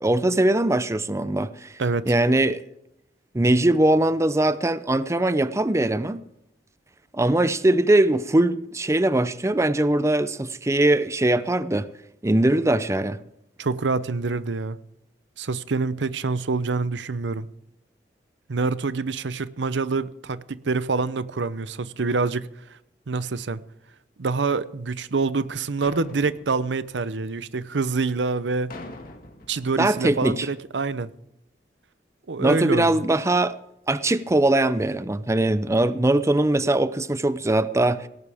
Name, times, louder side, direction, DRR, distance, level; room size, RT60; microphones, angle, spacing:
voice 1, 0.0-1.7 2.1-2.6 3.3-6.2 7.1-11.9 12.2-13.2 29.8-30.5 32.4-33.6 33.9-38.1, right 1 dB, 15° right, 0.6 m, -21 dB
voice 2, 1.8-2.1 13.6-14.8 15.4-17.5 18.5-22.5 23.1-23.6 24.2-28.7 29.5-31.1 32.3-33.0, right 4 dB, 90° right, 0.7 m, -26 dB
sound 1, 25.8-27.8 28.7-30.6, left 2 dB, 55° left, 2.2 m, -44 dB
18.0 x 17.5 x 3.5 m
head